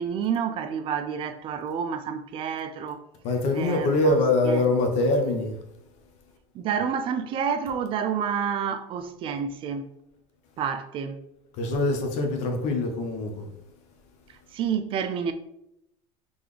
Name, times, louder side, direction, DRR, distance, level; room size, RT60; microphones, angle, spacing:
voice 1, 0.0-3.0 3.5-4.7 6.5-9.9 10.6-11.2 14.5-15.3, right 7 dB, 45° right, 0.4 m, -29 dB
voice 2, 3.2-5.5 11.6-13.4, left 2 dB, 60° left, 1.0 m, -24 dB
4.0 x 3.4 x 3.3 m
supercardioid pair, 125°, 13 cm